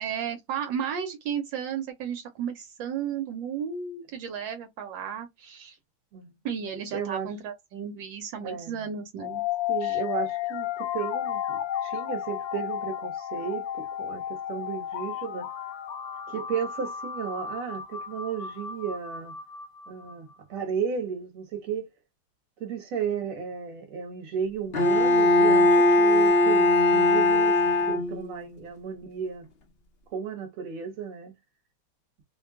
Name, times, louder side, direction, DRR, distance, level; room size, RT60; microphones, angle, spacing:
voice 1, 0.0-5.8 6.4-9.4 9.8-10.0, right 7 dB, 75° right, 1.3 m, -34 dB
voice 2, 6.9-7.3 8.4-8.9 9.7-15.5 16.3-19.4 19.9-21.9 22.6-29.5 30.1-31.3, right 7 dB, 50° right, 1.2 m, -34 dB
sound 1, 9.2-20.2, left 10 dB, 85° left, 1.4 m, -33 dB
Bowed string instrument, 24.7-28.5, left 2 dB, 65° left, 0.5 m, -20 dB
3.2 x 2.2 x 3.5 m
omnidirectional pair, 2.1 m